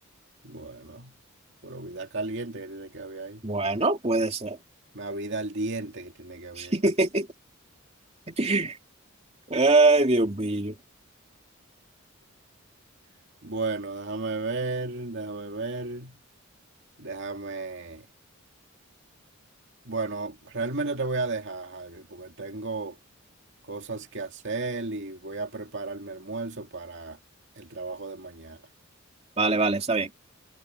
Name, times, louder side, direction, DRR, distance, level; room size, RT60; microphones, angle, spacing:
voice 1, 0.4-1.1 1.6-3.4 4.9-6.8 13.4-16.2 17.0-18.0 19.8-23.0 23.7-27.2 27.6-28.6, right 3 dB, 55° right, 2.3 m, -34 dB
voice 2, 3.4-4.6 6.6-7.3 8.3-8.8 9.5-10.7 29.4-30.1, right 2 dB, 30° right, 2.7 m, -23 dB
head